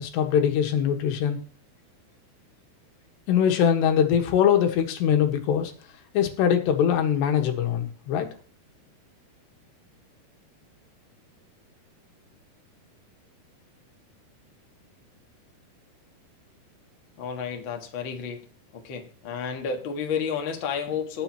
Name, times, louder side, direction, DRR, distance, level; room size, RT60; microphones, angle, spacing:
voice 1, 0.0-1.4 3.3-5.7 6.1-8.3, left 8 dB, 85° left, 5 dB, 3.7 m, -22 dB
voice 2, 17.2-18.4 18.8-21.2, left 6 dB, 50° left, 3 dB, 1.5 m, -31 dB
20.5 x 7.0 x 2.9 m, 0.43 s
omnidirectional pair, 4.9 m